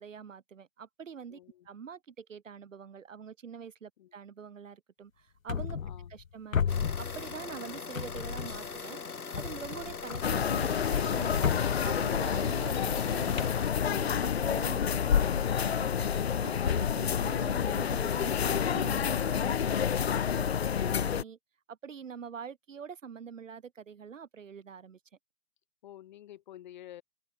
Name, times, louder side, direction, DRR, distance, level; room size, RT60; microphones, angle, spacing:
voice 1, 0.0-1.4 1.6-5.8 6.1-11.5 11.8-13.5 13.8-19.9 20.4-20.5 20.9-21.4 21.7-25.0, right 7 dB, 60° right, 3.0 m, -45 dB
voice 2, 1.3-1.7 4.0-4.1 5.8-6.1 9.6-10.0 25.8-27.0, left 12 dB, 30° left, 6.2 m, -51 dB
sound 1, 5.5-6.3 6.5-7.6 7.9-8.8 9.3-14.4, left 7 dB, 65° left, 1.9 m, -35 dB
sound 2, 6.7-13.7, left 5 dB, 85° left, 3.5 m, -41 dB
sound 3, 10.2-21.2, left 8 dB, 50° left, 0.6 m, -29 dB
hypercardioid pair, 160°, 43 cm